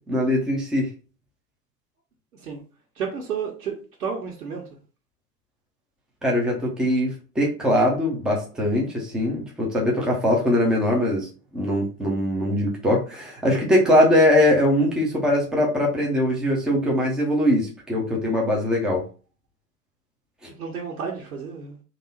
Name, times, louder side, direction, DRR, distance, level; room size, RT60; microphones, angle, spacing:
voice 1, 0.1-0.9 6.2-19.0 20.4-20.5, left 1 dB, ahead, 0.5 m, -21 dB
voice 2, 3.0-4.6 20.6-21.8, right 6 dB, 60° right, 1.4 m, -31 dB
4.0 x 2.8 x 4.1 m
figure-of-eight pair, 100°, 49 cm